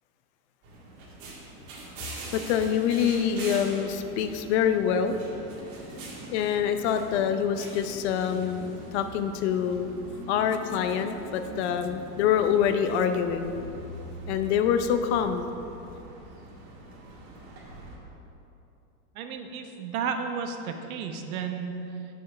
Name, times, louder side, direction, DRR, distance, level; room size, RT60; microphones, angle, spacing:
sound 1, 0.6-18.0, right 1 dB, 40° right, 1.9 m, -42 dB
voice 1, 2.3-5.2 6.3-9.9 10.3-13.6 14.3-15.5, left 8 dB, 50° left, 8 dB, 0.6 m, -26 dB
voice 2, 19.1-21.7, right 6 dB, 65° right, 5 dB, 1.1 m, -33 dB
7.0 x 6.4 x 6.5 m, 2.8 s
supercardioid pair, 150°, 45 cm